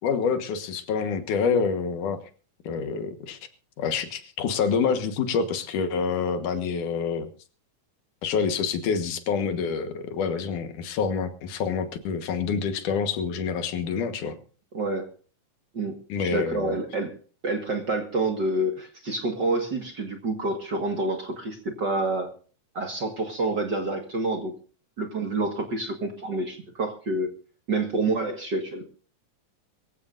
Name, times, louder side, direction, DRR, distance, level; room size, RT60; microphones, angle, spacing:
voice 1, 0.0-2.2 2.6-3.4 3.8-7.3 8.2-14.4 16.1-16.8, left 6 dB, 75° left, 9 dB, 2.8 m, -27 dB
voice 2, 14.7-15.1 15.7-17.1 17.4-22.3 22.7-24.5 25.0-27.3 27.7-28.8, right 2 dB, 40° right, 5 dB, 1.8 m, -28 dB
23.0 x 15.0 x 2.6 m, 0.40 s
omnidirectional pair, 3.7 m